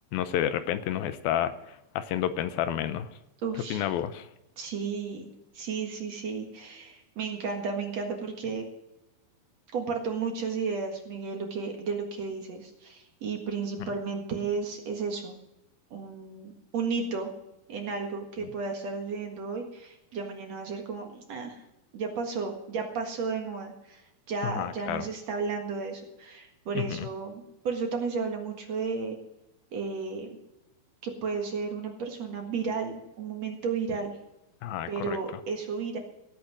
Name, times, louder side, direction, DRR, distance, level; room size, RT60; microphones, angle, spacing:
voice 1, 0.1-3.1 3.7-4.3 24.4-25.1 26.8-27.1 34.6-35.2, left 11 dB, 80° left, 11 dB, 2.6 m, -30 dB
voice 2, 3.4-3.8 4.6-5.3 5.5-8.7 9.7-15.4 15.9-17.3 17.7-21.6 21.9-24.0 24.3-29.2 29.7-30.3 31.0-34.2 34.9-36.0, right 5 dB, 55° right, 3 dB, 2.5 m, -33 dB
17.0 x 8.5 x 6.2 m, 0.89 s
omnidirectional pair, 4.3 m